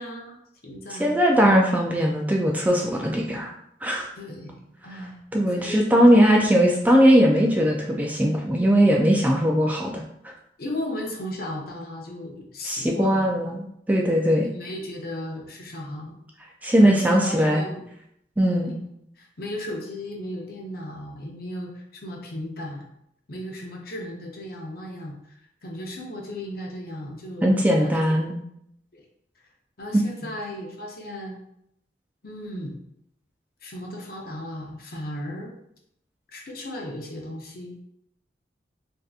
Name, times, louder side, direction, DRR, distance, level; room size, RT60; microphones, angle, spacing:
voice 1, 0.0-1.2 4.2-5.2 5.5-6.2 10.6-13.3 14.4-16.2 16.8-17.8 18.5-18.8 19.2-22.8 23.3-28.1 28.9-29.0 29.8-31.4 32.2-32.8 33.6-35.5 36.3-37.8, left 1 dB, 55° left, 0 dB, 0.7 m, -36 dB
voice 2, 0.9-3.5 3.8-4.1 5.3-10.0 12.7-14.5 16.6-17.6 18.4-18.7 27.4-28.4, equal, 10° right, -1 dB, 0.3 m, -19 dB
3.5 x 2.7 x 2.4 m, 0.74 s
head